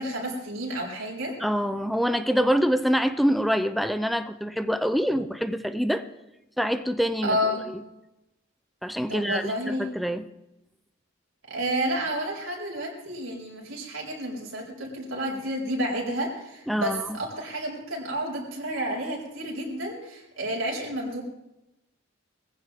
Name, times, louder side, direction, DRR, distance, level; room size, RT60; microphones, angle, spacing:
voice 1, 0.0-1.4 7.2-7.7 9.1-9.9 11.5-21.2, equal, 75° right, -3 dB, 4.4 m, -30 dB
voice 2, 1.4-6.1 6.6-7.4 7.7-7.8 8.8-10.3 16.7-17.1, equal, ahead, 9 dB, 0.5 m, -25 dB
20.5 x 15.5 x 3.6 m, 0.93 s
head